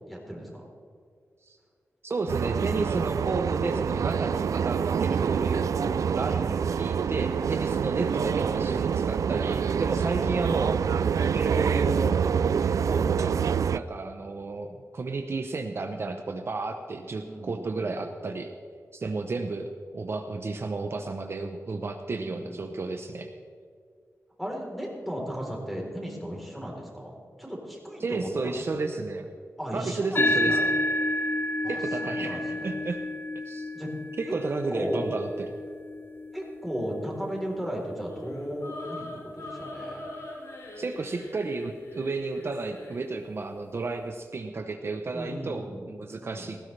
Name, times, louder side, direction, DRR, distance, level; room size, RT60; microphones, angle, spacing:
voice 1, 0.1-0.7 17.0-18.0 22.2-22.7 24.4-28.6 29.6-30.7 31.6-32.7 33.7-33.9 34.3-34.4 34.7-35.1 36.3-40.1 45.1-45.9 46.2-46.5, equal, ahead, -2 dB, 3.8 m, -36 dB
voice 2, 2.0-10.8 11.2-12.2 12.6-13.4 13.7-18.5 18.9-19.7 19.9-23.3 28.0-29.3 29.7-30.6 31.7-33.0 33.5-33.7 34.2-35.5 40.8-46.6, right 3 dB, 50° right, 5 dB, 0.7 m, -32 dB
sound 1, 2.3-13.8, right 7 dB, 80° right, 0.3 m, -26 dB
sound 2, 30.1-38.9, left 1 dB, 40° left, 0.6 m, -31 dB
sound 3, 37.8-43.1, left 1 dB, 70° left, 4.1 m, -42 dB
17.5 x 15.5 x 3.3 m, 2.2 s
wide cardioid pair, 110°, 5 cm